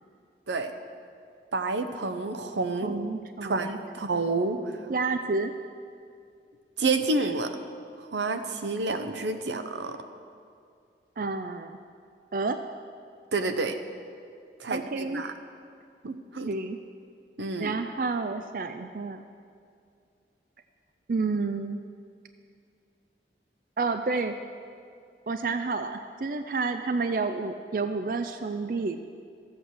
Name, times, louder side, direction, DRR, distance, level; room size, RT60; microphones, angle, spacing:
voice 1, 1.5-2.9 3.4-4.6 6.8-7.5 8.1-10.0 13.3-13.8 14.6-15.3 16.0-16.5 17.4-17.7, right 3 dB, 90° right, 8 dB, 0.8 m, -29 dB
voice 2, 2.8-3.8 4.9-5.5 11.2-11.8 12.3-12.6 14.7-15.3 16.5-16.8 17.6-19.2 21.1-21.8 23.8-24.4 25.3-29.0, right 3 dB, 50° right, 8 dB, 0.4 m, -30 dB
13.0 x 8.0 x 6.3 m, 2.4 s
head